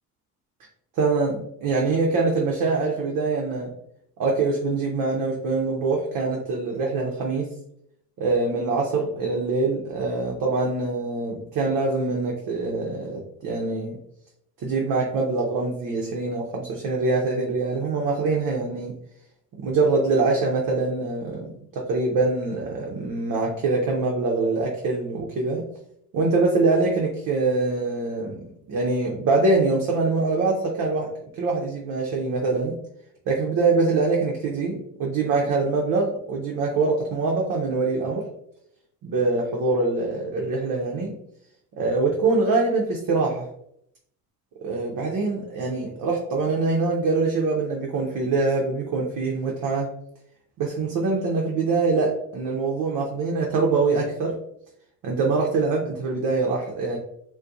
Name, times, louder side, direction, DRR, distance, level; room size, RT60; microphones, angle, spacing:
voice 1, 1.0-3.7 4.2-7.5 8.2-14.0 14.6-19.0 19.6-25.6 26.1-32.8 33.3-38.2 39.0-41.2 41.8-43.5 44.6-49.9 50.6-54.4 55.0-57.0, right 3 dB, 45° right, -1 dB, 0.6 m, -24 dB
2.5 x 2.2 x 2.4 m, 0.72 s
hypercardioid pair, 60°, 46 cm